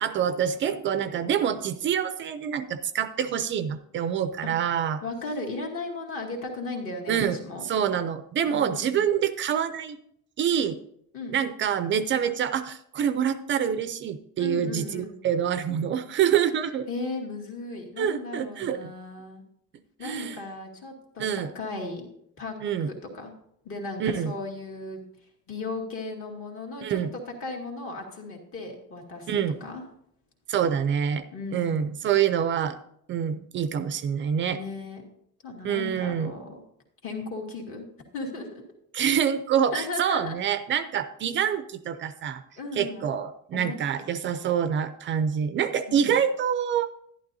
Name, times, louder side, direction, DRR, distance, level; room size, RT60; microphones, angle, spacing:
voice 1, 0.0-5.0 7.1-7.4 7.7-10.0 10.4-10.8 11.3-16.9 18.0-18.8 20.0-20.4 21.2-21.5 22.6-22.9 24.0-24.3 26.8-27.1 29.3-29.6 30.5-31.2 31.5-32.8 33.1-34.6 35.6-36.3 38.9-42.4 42.7-46.9, right 8 dB, 40° right, 11 dB, 0.4 m, -26 dB
voice 2, 5.0-7.6 8.4-9.0 11.1-11.4 14.4-15.2 16.9-19.4 20.0-22.1 22.4-22.6 22.8-23.3 23.6-25.0 25.5-29.3 29.6-29.8 31.3-31.9 34.5-35.0 35.4-36.6 37.0-37.9 38.1-38.6 39.7-40.4 42.6-43.0 43.5-44.1 45.9-46.1, left 3 dB, 40° left, 1 dB, 2.2 m, -36 dB
11.5 x 11.0 x 2.7 m, 0.70 s
cardioid pair, 180°, 32 cm